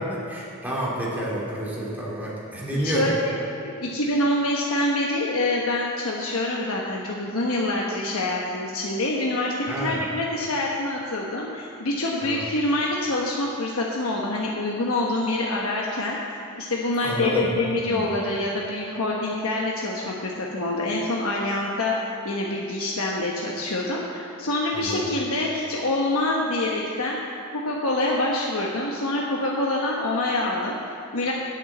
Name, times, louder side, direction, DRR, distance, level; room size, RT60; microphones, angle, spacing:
voice 1, 0.0-3.1 9.7-10.0 12.2-12.4 17.0-17.5 17.9-18.1 24.7-25.1, right 1 dB, 10° right, -6 dB, 2.4 m, -29 dB
voice 2, 2.7-3.3 3.6-27.2 27.5-31.3, left 2 dB, 75° left, -2 dB, 1.0 m, -26 dB
8.5 x 7.2 x 8.5 m, 2.7 s
head